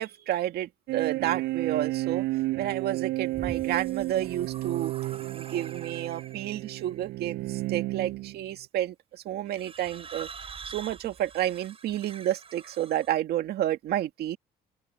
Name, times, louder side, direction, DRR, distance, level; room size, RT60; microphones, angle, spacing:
voice 1, 0.0-2.2 2.6-4.9 5.3-10.3 10.7-14.4, right 12 dB, 70° right, 2.0 m, -30 dB
sound 1, 0.9-8.5, right 18 dB, 85° right, 6.8 m, -32 dB
sound 2, 3.1-6.6 7.5-7.9 9.5-13.1, right 5 dB, 35° right, 7.5 m, -45 dB
open air
cardioid pair, 110°, 17 cm